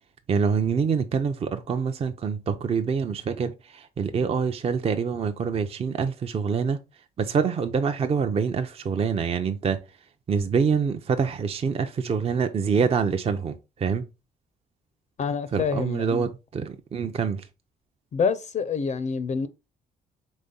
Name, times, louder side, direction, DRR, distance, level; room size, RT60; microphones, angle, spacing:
voice 1, 0.3-6.8 7.2-9.8 10.3-14.1 15.5-17.4, right 6 dB, 35° right, 0.5 m, -26 dB
voice 2, 15.2-16.3 18.1-19.5, left 5 dB, 45° left, 0.4 m, -27 dB
4.1 x 3.5 x 3.7 m
cardioid pair, 85°, 17 cm